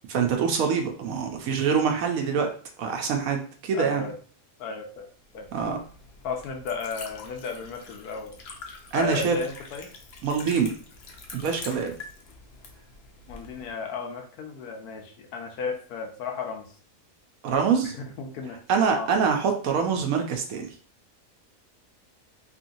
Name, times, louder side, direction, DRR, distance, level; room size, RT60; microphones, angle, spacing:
voice 1, 0.1-2.5 2.8-4.1 5.5-5.8 8.9-9.4 10.2-10.7 11.3-11.9 17.4-17.9 18.7-20.7, right 6 dB, 70° right, 3 dB, 1.0 m, -25 dB
voice 2, 3.7-4.2 4.6-5.1 5.3-5.5 6.2-8.4 8.9-9.9 13.3-16.7 17.8-18.6 18.9-19.1, left 5 dB, 85° left, 4 dB, 1.2 m, -34 dB
Liquid, 5.2-13.7, left 4 dB, 60° left, 0.7 m, -45 dB
3.1 x 2.9 x 2.6 m, 0.42 s
omnidirectional pair, 1.6 m